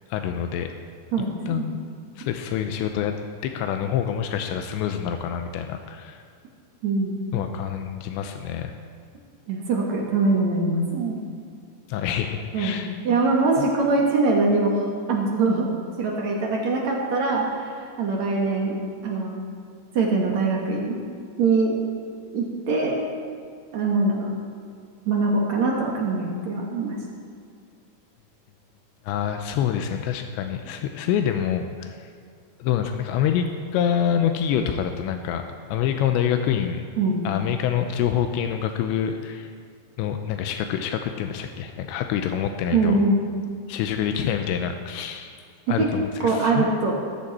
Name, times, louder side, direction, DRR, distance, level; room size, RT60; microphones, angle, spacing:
voice 1, 0.1-0.7 1.5-1.8 2.2-3.2 3.4-6.2 7.3-8.7 11.9-12.9 13.6-13.7 29.1-32.1 32.6-33.5 33.7-35.4 35.7-36.8 37.2-39.5 40.0-43.0 43.7-45.3 45.7-46.9, left 9 dB, 85° left, 6 dB, 3.0 m, -26 dB
voice 2, 1.1-1.7 6.8-7.5 9.5-11.2 12.5-15.7 16.0-17.6 18.0-18.8 19.0-19.4 19.9-21.0 21.4-21.7 22.3-23.0 23.7-24.3 25.1-27.0 37.0-37.3 42.7-43.2 45.8-45.9 46.2-46.9, right 3 dB, 55° right, -1 dB, 2.3 m, -23 dB
17.0 x 14.0 x 4.2 m, 2.2 s
omnidirectional pair, 5.1 m